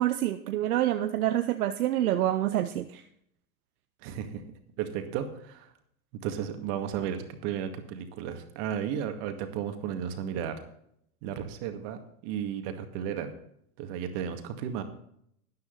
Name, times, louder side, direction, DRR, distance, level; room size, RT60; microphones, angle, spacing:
voice 1, 0.0-3.0, right 13 dB, 80° right, 8 dB, 0.9 m, -27 dB
voice 2, 4.0-5.7 6.1-10.6 11.2-13.3 13.8-14.8, right 8 dB, 55° right, 7 dB, 2.2 m, -34 dB
13.5 x 9.7 x 4.0 m, 0.70 s
hypercardioid pair, 110°, 43 cm